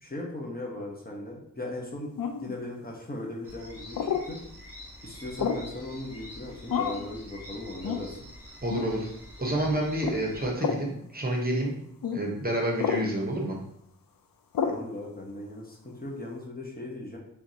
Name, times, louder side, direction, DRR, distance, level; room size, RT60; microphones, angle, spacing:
voice 1, 0.0-4.4 5.0-8.2 14.6-17.2, left 1 dB, 25° left, -1 dB, 0.9 m, -38 dB
sound 1, 2.2-2.5 3.9-4.3 5.4-5.7 6.7-7.1 7.8-8.1 8.7-8.9 10.0-10.2 10.6-10.8 12.0-12.2 12.8-13.1 14.5-14.8, left 7 dB, 75° left, 0.5 m, -29 dB
sound 2, 3.4-10.4, left 1 dB, 5° right, 1.6 m, -46 dB
voice 2, 8.6-9.1 9.4-11.7 12.1-13.6, right 1 dB, 25° right, -1 dB, 0.9 m, -28 dB
4.6 x 3.4 x 2.7 m, 0.73 s
wide cardioid pair, 95°, 34 cm